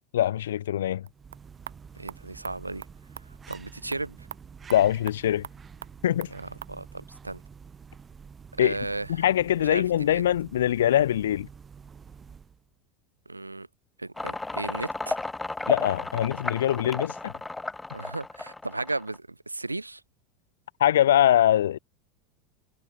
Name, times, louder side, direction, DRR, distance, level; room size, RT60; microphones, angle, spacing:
voice 1, 0.1-1.1 4.7-5.5 6.0-6.3 8.6-8.8 9.1-11.5 15.7-17.3 20.8-21.8, left 11 dB, 70° left, 1.0 m, -23 dB
sound 1, 0.9-12.7, right 6 dB, 25° right, 4.5 m, -48 dB
sound 2, 1.1-6.8, right 9 dB, 70° right, 4.3 m, -46 dB
voice 2, 1.9-2.9 3.3-4.3 6.3-7.4 8.6-9.2 9.6-10.3 13.3-13.7 14.0-15.2 17.9-20.0, right 2 dB, 90° right, 2.1 m, -35 dB
sound 3, 14.2-19.2, left 2 dB, 10° left, 1.8 m, -33 dB
figure-of-eight pair, 80°, 0 cm